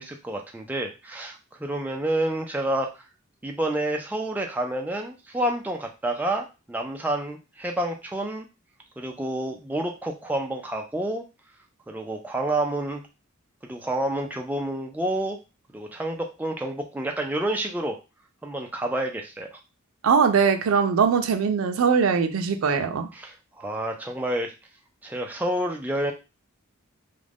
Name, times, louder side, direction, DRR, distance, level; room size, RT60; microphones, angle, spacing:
voice 1, 0.0-2.9 3.4-8.5 9.0-11.2 11.9-13.0 13.6-15.4 15.7-18.0 18.4-19.6 23.1-24.5 25.0-26.1, right 1 dB, 10° right, 0.3 m, -29 dB
voice 2, 20.0-23.1, right 6 dB, 85° right, 0.4 m, -21 dB
2.5 x 2.1 x 3.3 m
head